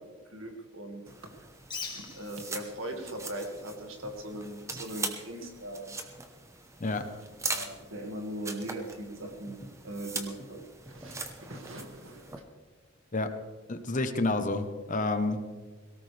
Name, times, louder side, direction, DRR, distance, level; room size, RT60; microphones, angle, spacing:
voice 1, 0.3-1.0 1.9-6.0 7.5-12.4, right 1 dB, 65° right, 4 dB, 2.0 m, -40 dB
sound 1, 1.1-12.4, right 3 dB, 15° right, 1.0 m, -41 dB
Bird, 1.6-8.2, left 5 dB, 20° left, 1.9 m, -48 dB
voice 2, 13.7-15.4, left 2 dB, 35° left, 8 dB, 1.0 m, -29 dB
18.0 x 17.5 x 3.4 m, 1.4 s
head